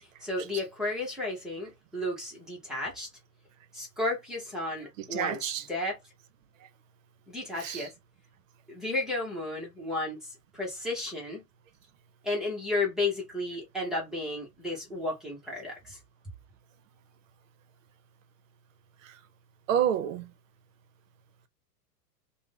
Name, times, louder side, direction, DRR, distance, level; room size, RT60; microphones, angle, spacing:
voice 1, 0.2-3.1 3.7-6.0 7.3-7.9 8.7-10.3 10.5-11.4 12.2-16.0, left 2 dB, ahead, 0.5 m, -33 dB
voice 2, 5.0-5.7 7.6-7.9 19.0-19.2 19.7-20.3, right 9 dB, 55° right, 0.6 m, -30 dB
2.4 x 2.0 x 3.5 m
hypercardioid pair, 130°, 48 cm